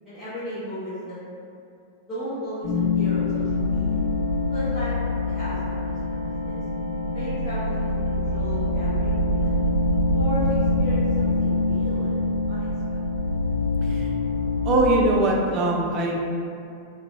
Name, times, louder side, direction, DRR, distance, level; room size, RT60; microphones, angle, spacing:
voice 1, 0.0-1.2 2.1-4.0 4.5-4.9 5.3-6.6 7.1-9.6 10.1-10.4 10.8-12.2 12.5-12.7, equal, ahead, -17 dB, 0.9 m, -35 dB
sound 1, 2.6-14.9, left 2 dB, 60° left, 0.6 m, -24 dB
voice 2, 14.6-16.1, right 2 dB, 35° right, -1 dB, 0.4 m, -21 dB
3.0 x 2.1 x 2.5 m, 2.5 s
figure-of-eight pair, 90°, 0 cm